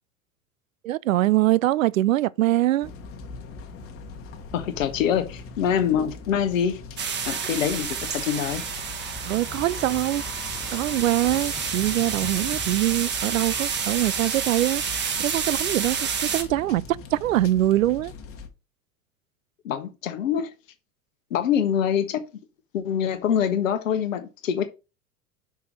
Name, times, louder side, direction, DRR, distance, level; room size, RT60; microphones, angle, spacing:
voice 1, 0.8-2.9 9.2-10.2 10.7-14.8 15.2-18.1, right 15 dB, 70° right, 0.5 m, -23 dB
sound 1, 2.8-18.5, left 3 dB, 30° left, 1.3 m, -41 dB
voice 2, 4.5-6.8 7.3-8.6 19.6-20.5 21.3-22.2 22.7-24.7, left 8 dB, 65° left, 1.0 m, -25 dB
sound 2, 7.0-16.4, right 6 dB, 25° right, 1.4 m, -29 dB
sound 3, 8.3-13.3, left 5 dB, 10° left, 0.4 m, -43 dB
5.9 x 4.7 x 5.3 m
figure-of-eight pair, 80°, 41 cm